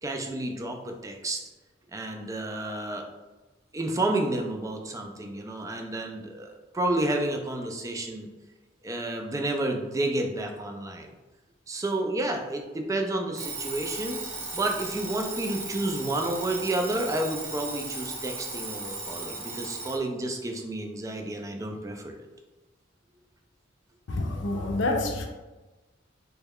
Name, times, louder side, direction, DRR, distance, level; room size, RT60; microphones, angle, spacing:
voice 1, 0.0-1.4 1.9-3.1 3.7-8.3 8.8-11.1 11.7-14.2 14.5-22.2, right 2 dB, 15° right, 3 dB, 0.3 m, -30 dB
Alarm, 13.3-20.0, right 3 dB, 65° right, 0.7 m, -36 dB
voice 2, 24.1-25.3, left 2 dB, 70° left, 2 dB, 0.5 m, -27 dB
3.1 x 2.3 x 3.5 m, 1.2 s
head